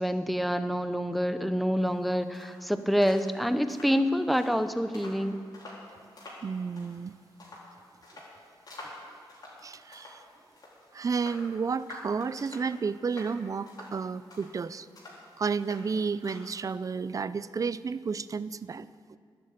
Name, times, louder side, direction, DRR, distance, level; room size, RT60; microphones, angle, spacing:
voice 1, 0.0-5.4, equal, ahead, 10 dB, 0.6 m, -27 dB
sound 1, 1.8-16.7, left 1 dB, 50° left, 4.2 m, -50 dB
voice 2, 6.4-7.1 9.6-10.2 10.9-14.9 15.4-19.2, right 5 dB, 40° right, 16 dB, 0.4 m, -32 dB
11.5 x 8.4 x 8.3 m, 2.1 s
cardioid pair, 90°, 9 cm